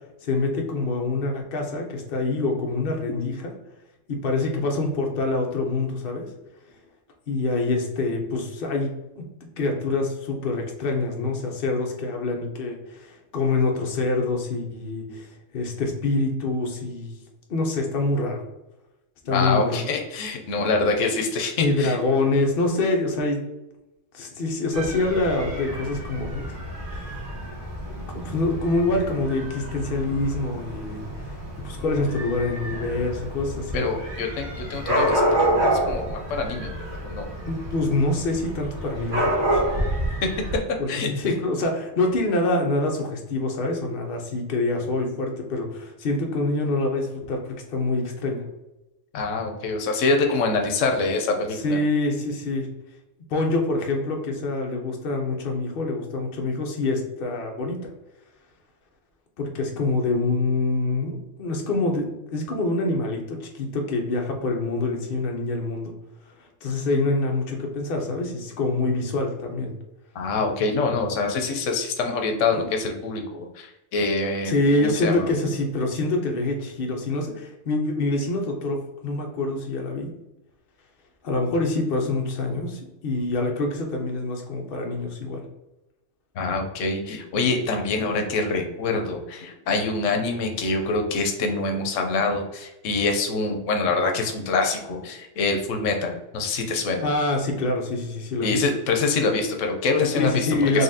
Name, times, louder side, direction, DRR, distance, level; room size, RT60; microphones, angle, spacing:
voice 1, 0.2-3.5 4.1-6.3 7.3-9.2 9.6-15.3 15.5-17.2 17.5-18.4 19.2-19.8 21.6-23.4 24.1-26.5 26.8-27.3 27.9-31.3 31.6-33.8 37.2-39.6 40.8-48.4 51.6-52.7 53.3-57.8 59.4-65.9 66.6-69.7 72.5-72.6 74.4-78.8 79.0-80.1 81.2-85.5 97.0-98.6 100.1-100.8, left 2 dB, 50° left, 1 dB, 0.8 m, -26 dB
voice 2, 19.3-22.0 33.7-36.7 37.0-37.3 40.9-41.1 49.1-51.8 70.1-74.5 74.8-75.3 86.4-97.1 98.4-100.5 100.7-100.8, left 3 dB, 85° left, 3 dB, 1.0 m, -25 dB
Dog / Cat, 24.7-40.6, right 1 dB, 75° right, 1.8 m, -28 dB
4.0 x 3.0 x 2.6 m, 0.97 s
omnidirectional pair, 1.3 m